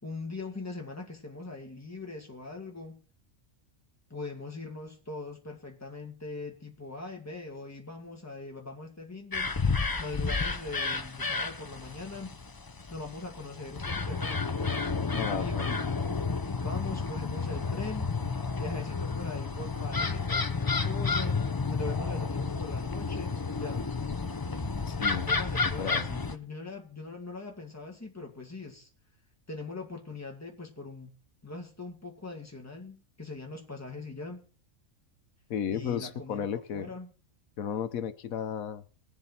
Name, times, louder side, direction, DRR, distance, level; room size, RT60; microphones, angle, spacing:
voice 1, 0.0-3.0 4.1-9.5 10.0-12.4 12.9-14.7 15.4-15.8 16.6-18.1 18.6-23.9 25.1-28.9 29.5-31.2 31.4-34.4 35.7-36.4 36.7-37.1, left 3 dB, 10° left, 2.3 m, -41 dB
sound 1, 9.3-26.4, left 4 dB, 25° left, 0.5 m, -31 dB
voice 2, 15.1-15.7 24.9-25.3 25.8-26.1 35.5-36.9 37.6-38.8, left 8 dB, 85° left, 1.3 m, -33 dB
21.0 x 7.3 x 4.3 m
omnidirectional pair, 1.4 m